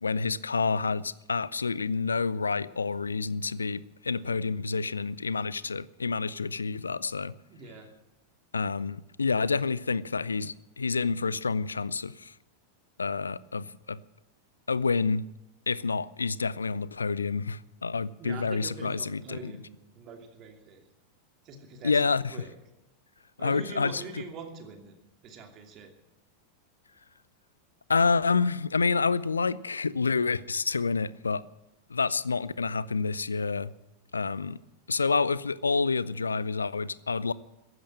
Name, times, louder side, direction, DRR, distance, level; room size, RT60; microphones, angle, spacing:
voice 1, 0.0-7.3 8.5-12.3 13.0-14.0 14.7-15.3 15.7-19.5 21.8-22.4 23.4-24.2 27.9-31.4 31.9-33.7 34.1-34.6 34.9-37.3, left 4 dB, 75° left, 0.5 m, -28 dB
voice 2, 7.5-7.9 18.2-20.8 21.4-22.5 23.4-24.9 25.2-25.9, right 4 dB, 35° right, 2.8 m, -43 dB
15.0 x 11.0 x 7.4 m
figure-of-eight pair, 90°, 0 cm